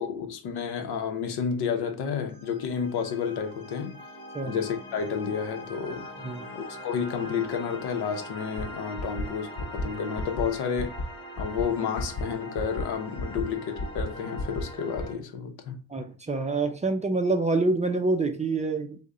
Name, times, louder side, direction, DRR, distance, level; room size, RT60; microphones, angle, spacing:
voice 1, 0.0-4.0 4.4-6.1 6.5-11.0 11.4-15.8, left 6 dB, 75° left, 0.8 m, -31 dB
sound 1, 2.3-15.1, equal, 10° left, 0.8 m, -42 dB
sound 2, 8.6-8.7 9.0-9.2 9.6-9.8 10.2-10.4 10.8-11.0 11.4-11.6 12.0-12.2 12.6-12.8 13.2-13.4 13.8-14.0 14.4-14.6 15.0-15.1, left 3 dB, 45° left, 0.7 m, -32 dB
voice 2, 15.9-19.0, right 3 dB, 20° right, 0.4 m, -26 dB
3.4 x 2.2 x 3.7 m
cardioid pair, 100°, 39 cm